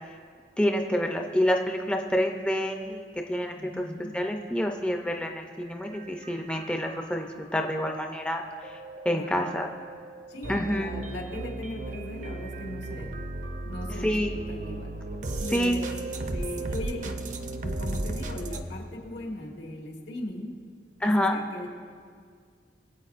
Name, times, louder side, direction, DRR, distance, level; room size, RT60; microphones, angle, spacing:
voice 1, 0.6-3.9 4.1-8.7 9.1-9.7 10.5-10.9 14.0-14.3 15.5-15.8 21.0-21.4, equal, 5° left, 3 dB, 0.4 m, -27 dB
voice 2, 3.5-4.1 9.1-9.5 10.3-13.2 13.6-15.0 15.4-15.9 16.3-17.2 17.6-20.6 21.0-21.7, left 1 dB, 85° left, 0 dB, 1.6 m, -38 dB
sound 1, 5.7-18.6, right 2 dB, 45° right, 0.6 m, -36 dB
22.0 x 8.1 x 2.5 m, 2.1 s
head